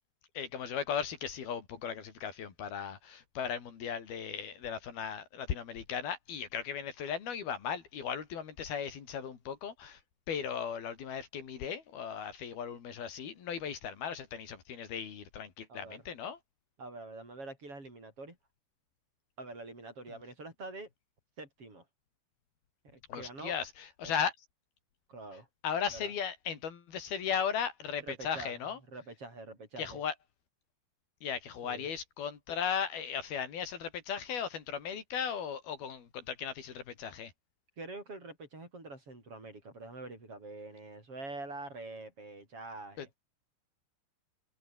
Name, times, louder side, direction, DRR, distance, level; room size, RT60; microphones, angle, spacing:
voice 1, 0.3-10.0 10.3-16.4 23.1-24.3 25.6-28.8 29.8-30.1 31.2-37.3 43.0-43.2, left 7 dB, 55° left, 4.6 m, -37 dB
voice 2, 15.7-16.0 16.8-18.4 19.4-20.9 21.4-21.9 22.8-23.6 24.0-24.2 25.1-25.5 25.9-26.1 28.0-28.6 28.9-30.0 31.6-31.9 37.8-43.1, right 2 dB, 25° right, 8.6 m, -45 dB
omnidirectional pair, 5.8 m